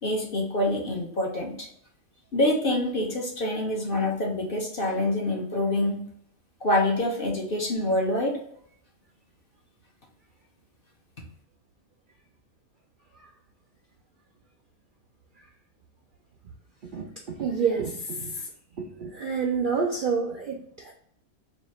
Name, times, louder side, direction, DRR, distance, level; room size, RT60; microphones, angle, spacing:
voice 1, 0.0-1.7 2.3-6.0 6.6-8.3, left 1 dB, 45° left, -1 dB, 0.9 m, -26 dB
voice 2, 16.9-18.5 18.8-20.9, right 5 dB, 65° right, 1 dB, 0.5 m, -28 dB
3.2 x 2.5 x 4.2 m, 0.67 s
omnidirectional pair, 1.5 m